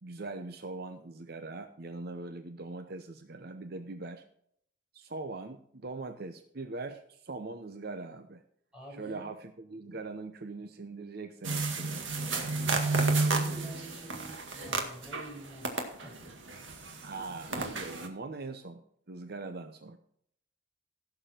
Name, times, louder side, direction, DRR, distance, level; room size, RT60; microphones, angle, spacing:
voice 1, 0.0-4.2 4.9-8.4 8.9-12.1 17.0-18.8 19.1-20.0, right 3 dB, 55° right, 8 dB, 0.8 m, -41 dB
voice 2, 8.7-9.2 13.3-16.3, right 1 dB, 5° right, -3 dB, 5.0 m, -47 dB
sound 1, 11.4-15.3 15.6-18.1, right 3 dB, 90° right, 2.0 m, -31 dB
16.5 x 7.1 x 4.4 m, 0.68 s
head